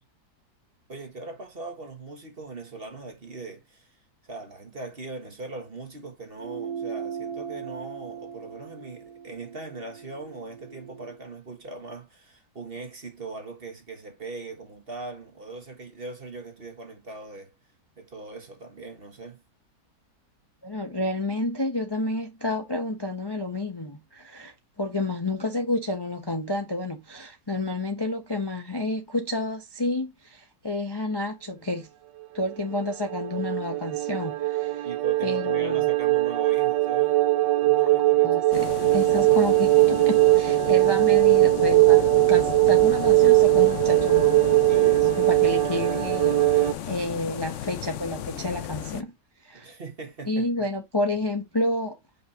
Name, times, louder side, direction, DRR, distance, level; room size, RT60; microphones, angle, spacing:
voice 1, 0.9-4.0 4.2-17.5 18.0-19.4 34.8-37.3 37.6-38.4 44.6-45.3 49.5-50.7, right 3 dB, 35° right, 1.6 m, -40 dB
sound 1, 6.4-11.2, right 7 dB, 60° right, 1.5 m, -38 dB
voice 2, 20.6-31.9 32.3-34.9 35.2-35.9 38.2-38.4 38.9-44.3 45.0-49.1 49.4-49.8 50.3-52.0, left 2 dB, 20° left, 0.8 m, -30 dB
sound 2, 32.6-46.7, right 19 dB, 85° right, 1.3 m, -20 dB
sound 3, 38.5-49.0, left 11 dB, 65° left, 0.8 m, -35 dB
5.6 x 3.3 x 5.6 m
omnidirectional pair, 1.8 m